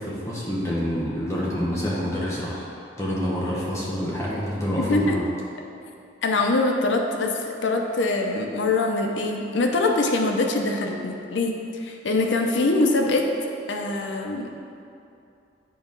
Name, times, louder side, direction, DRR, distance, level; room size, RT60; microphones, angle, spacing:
voice 1, 0.0-2.7 3.0-5.2, equal, 15° left, -6 dB, 0.9 m, -27 dB
voice 2, 4.8-5.2 6.2-7.3 7.6-13.3 13.7-14.5, left 2 dB, 80° left, 2 dB, 0.6 m, -23 dB
8.5 x 3.0 x 5.3 m, 2.6 s
head